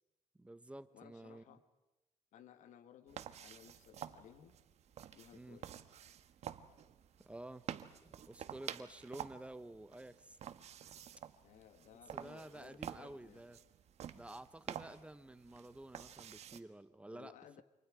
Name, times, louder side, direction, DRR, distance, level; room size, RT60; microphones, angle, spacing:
voice 1, 0.4-1.6 5.3-5.6 7.2-7.7 8.0-10.4 12.1-13.6 14.1-17.3, right 1 dB, 10° right, 13 dB, 0.8 m, -51 dB
voice 2, 0.9-1.6 2.3-4.6 5.1-5.7 11.4-13.6 17.1-17.6, left 10 dB, 80° left, 11 dB, 1.5 m, -59 dB
sound 1, 3.1-16.6, right 9 dB, 60° right, 1.2 m, -50 dB
29.5 x 26.0 x 4.9 m, 1.0 s
cardioid pair, 130°, 13 cm